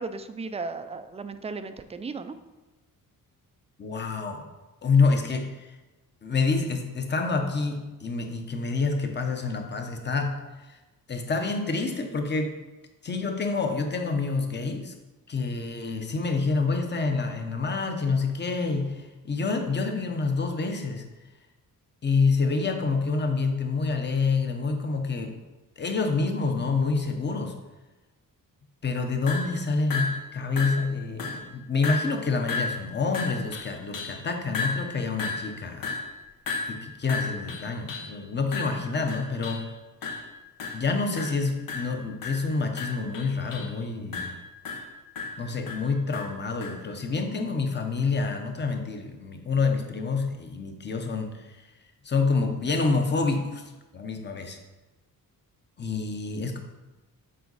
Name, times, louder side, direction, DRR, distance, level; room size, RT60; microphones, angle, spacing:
voice 1, 0.0-2.4, right 4 dB, 20° right, 10 dB, 0.3 m, -35 dB
voice 2, 3.8-4.5 4.8-5.8 6.2-10.4 10.6-10.8 11.1-12.6 13.0-14.9 15.3-21.0 22.0-25.3 25.8-27.6 28.8-36.0 36.7-39.7 40.7-44.4 45.4-51.7 52.0-53.6 53.9-54.6 55.8-56.6, left 4 dB, 30° left, 5 dB, 0.9 m, -27 dB
sound 1, 29.3-29.6 29.9-30.3 30.6-30.9 31.2-31.5 31.8-32.2 32.5-34.2 34.5-38.2 38.5-39.7 40.0-40.3 40.6-40.9 41.2-41.4 41.7-43.8 44.1-46.9, left 4 dB, 70° left, 1.0 m, -34 dB
7.7 x 4.5 x 4.0 m, 1.1 s
cardioid pair, 125°, 35 cm